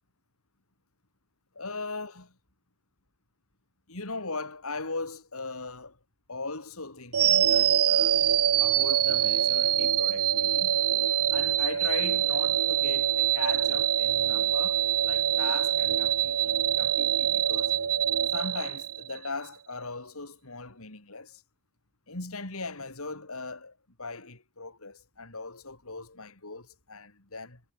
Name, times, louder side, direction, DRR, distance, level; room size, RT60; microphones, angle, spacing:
voice 1, 1.5-2.3 3.9-6.0 6.3-8.2 8.6-10.8 11.3-17.8 18.3-21.4 22.1-27.6, left 3 dB, 70° left, 4.1 m, -39 dB
sound 1, 7.1-19.3, right 10 dB, 80° right, 0.9 m, -25 dB
head